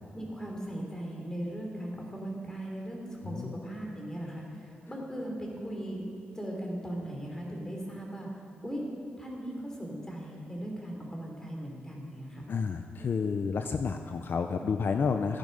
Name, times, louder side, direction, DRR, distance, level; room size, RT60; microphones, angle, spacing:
voice 1, 0.1-6.0 6.3-8.3 8.6-8.8 9.2-12.5, right 1 dB, 15° left, -1 dB, 3.4 m, -38 dB
voice 2, 3.2-3.6 12.5-15.4, left 5 dB, 60° left, 7 dB, 0.6 m, -30 dB
15.0 x 10.5 x 5.5 m, 2.6 s
cardioid pair, 90°, 4 cm